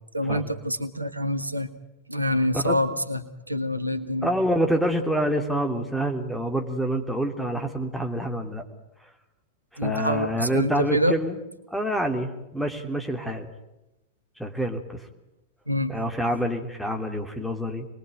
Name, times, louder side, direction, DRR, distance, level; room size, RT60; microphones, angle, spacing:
voice 1, 0.1-1.7 2.1-4.3 9.8-11.1 15.7-15.9, equal, 85° right, 10 dB, 1.4 m, -26 dB
voice 2, 4.2-8.6 9.8-11.4 11.7-13.5 14.4-15.0 15.9-17.9, equal, ahead, 4 dB, 3.0 m, -27 dB
27.0 x 21.0 x 9.1 m, 0.93 s
figure-of-eight pair, 90°, 0 cm